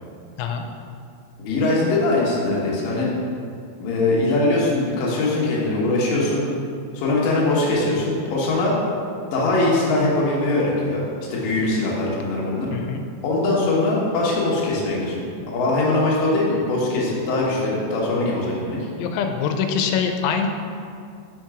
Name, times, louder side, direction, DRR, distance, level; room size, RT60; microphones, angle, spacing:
voice 1, 1.4-3.1 3.8-6.4 6.9-8.8 9.3-11.0 11.3-12.7 13.2-18.8, left 2 dB, 65° left, -5 dB, 2.2 m, -21 dB
voice 2, 12.7-13.0 19.0-20.5, left 6 dB, 90° left, 5 dB, 3.0 m, -24 dB
6.5 x 4.5 x 4.8 m, 2.3 s
omnidirectional pair, 5.3 m